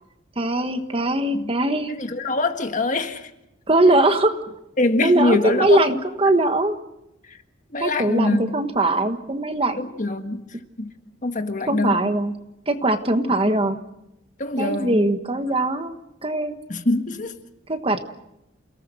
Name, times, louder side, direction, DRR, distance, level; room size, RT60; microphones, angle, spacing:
voice 1, 0.4-1.9 3.7-4.3 5.0-6.7 7.8-9.9 11.7-12.3 12.7-13.8 14.6-15.9 16.2-16.5 17.7-18.0, right 1 dB, 30° right, 1.4 m, -21 dB
voice 2, 1.9-3.3 4.8-5.8 7.7-8.6 9.8-10.5 10.8-10.9 11.2-12.1 14.4-15.0 16.7-17.4, left 2 dB, 40° left, 1.6 m, -24 dB
29.0 x 18.5 x 6.4 m
head